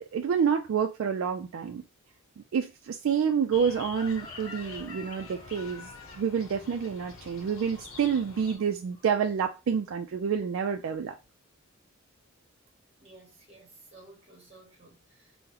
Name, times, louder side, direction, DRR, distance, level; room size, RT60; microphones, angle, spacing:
voice 1, 0.1-1.8 2.5-11.1, right 7 dB, 70° right, 0.3 m, -28 dB
sound 1, 3.5-8.6, left 4 dB, 75° left, 0.8 m, -47 dB
Chicken rooster, 3.7-8.6 8.9-9.3, left 4 dB, 20° left, 0.4 m, -49 dB
voice 2, 13.0-15.4, right 2 dB, 30° right, 1.2 m, -54 dB
3.7 x 2.1 x 2.8 m
head